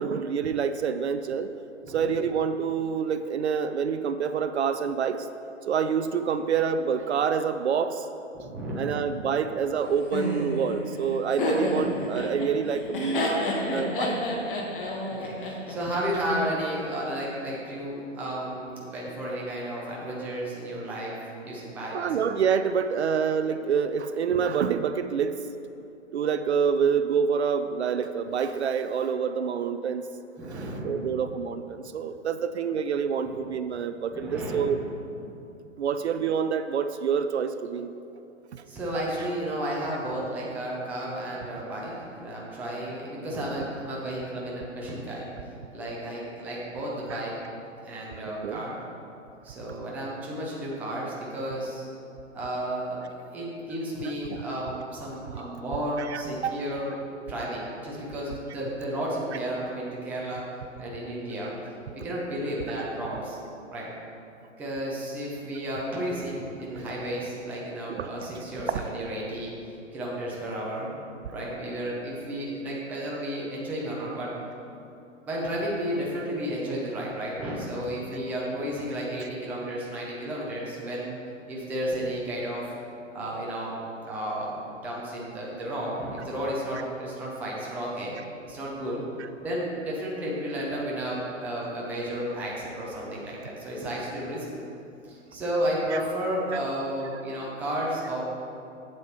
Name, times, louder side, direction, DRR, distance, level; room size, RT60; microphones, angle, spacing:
voice 1, 0.0-1.5 1.9-5.3 5.7-8.1 8.8-14.2 21.9-25.4 26.1-30.1 30.8-34.8 35.8-37.9 38.5-38.6 47.1-47.2 48.4-48.6 54.3-54.4 56.1-56.5 67.9-68.1 76.2-76.3 95.9-96.0, right 7 dB, 60° right, 10 dB, 0.4 m, -27 dB
voice 2, 1.8-2.1 8.3-9.0 11.8-12.1 12.8-13.0 15.1-21.1 21.4-22.0 30.4-31.3 33.2-33.4 34.1-34.8 35.1-35.3 38.7-45.3 45.7-47.4 47.8-48.8 49.4-51.9 52.3-60.4 60.8-61.5 61.9-63.4 63.7-63.9 64.6-69.5 69.9-71.0 71.3-74.3 75.3-81.2 81.5-82.6 83.1-83.8 84.0-88.2 88.4-89.0 89.4-94.5 95.1-98.2, right 1 dB, 5° right, -4 dB, 0.5 m, -32 dB
Laughter, 10.1-16.2, left 1 dB, 40° left, 1.5 m, -29 dB
7.7 x 7.5 x 4.4 m, 2.7 s
hypercardioid pair, 135°, 39 cm